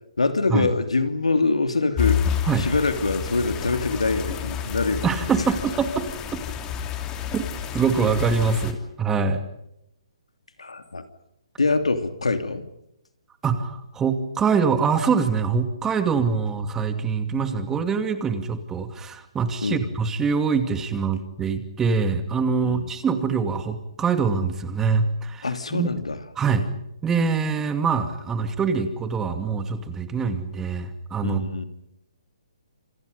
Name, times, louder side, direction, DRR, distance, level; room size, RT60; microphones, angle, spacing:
voice 1, 0.2-5.1 10.6-11.0 11.6-12.6 19.6-19.9 22.6-22.9 25.4-26.2 31.2-31.6, left 3 dB, 85° left, 9 dB, 2.9 m, -24 dB
sound 1, 2.0-8.7, left 9 dB, 20° left, 3.0 m, -29 dB
voice 2, 5.0-6.1 7.3-7.4 7.7-9.4 13.4-25.9 26.4-26.7 27.0-31.4, right 5 dB, 15° right, 9 dB, 2.5 m, -24 dB
28.5 x 27.5 x 5.3 m, 0.81 s
figure-of-eight pair, 140°, 3 cm